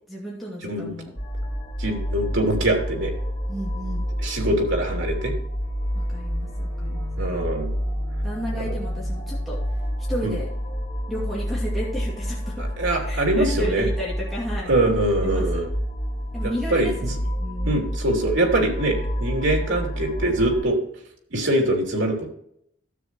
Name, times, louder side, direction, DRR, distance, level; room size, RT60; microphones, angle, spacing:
voice 1, 0.1-1.1 3.5-4.1 5.9-7.1 8.2-9.6 10.1-10.5 11.1-12.6 13.0-14.7 15.2-15.6 16.3-16.9 17.4-17.8, equal, ahead, -6 dB, 2.4 m, -32 dB
sound 1, 1.2-20.6, equal, 40° left, 3.8 m, -28 dB
voice 2, 1.8-3.1 4.2-5.3 7.2-7.7 8.6-8.7 10.2-10.3 12.6-13.9 14.7-15.7 16.4-17.1 17.6-20.8 21.3-22.3, right 1 dB, 85° right, 1 dB, 2.9 m, -23 dB
12.5 x 7.9 x 3.1 m, 0.69 s
head